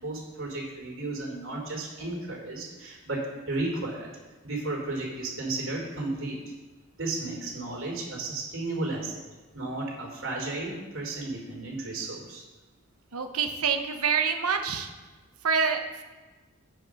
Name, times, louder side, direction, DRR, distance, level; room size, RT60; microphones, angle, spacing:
voice 1, 0.0-4.1 4.4-6.4 7.0-9.2 9.5-12.4, right 2 dB, 65° right, -2 dB, 3.2 m, -33 dB
voice 2, 13.1-14.9 15.4-16.0, right 6 dB, 85° right, 6 dB, 1.0 m, -26 dB
9.2 x 5.2 x 6.4 m, 1.3 s
head